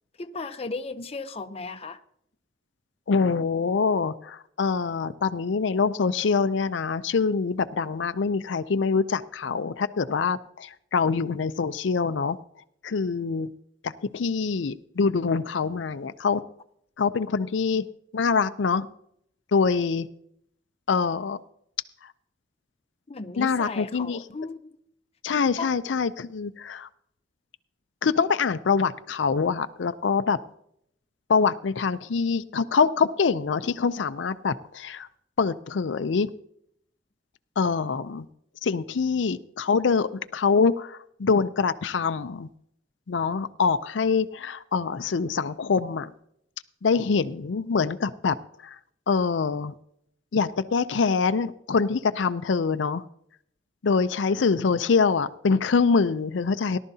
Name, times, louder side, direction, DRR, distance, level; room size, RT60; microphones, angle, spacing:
voice 1, 0.2-2.0 23.1-24.7 25.6-25.7, left 3 dB, 35° left, 0.6 m, -35 dB
voice 2, 3.1-12.4 12.8-13.5 13.8-16.4 17.0-17.9 18.1-18.9 19.5-20.1 20.9-21.4 22.0-22.1 23.4-24.2 25.2-26.9 28.0-30.4 31.3-35.1 35.4-36.3 37.6-38.3 38.6-42.5 43.1-46.1 46.8-48.4 48.6-48.8 49.1-49.7 50.3-53.0 53.8-56.8, left 5 dB, 85° left, 0.5 m, -25 dB
18.0 x 12.0 x 2.8 m
head